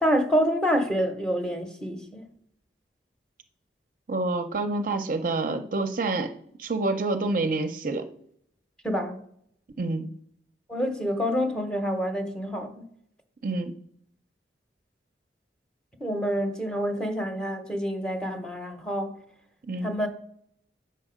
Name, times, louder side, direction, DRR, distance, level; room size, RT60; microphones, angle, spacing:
voice 1, 0.0-2.2 8.8-9.2 10.7-12.8 16.0-19.1 19.8-20.1, equal, 5° left, 0.7 m, -27 dB
voice 2, 4.1-6.3 6.6-8.1 9.8-10.1 13.4-13.8 19.7-19.9, right 2 dB, 50° right, 0.5 m, -27 dB
6.7 x 5.4 x 4.9 m
head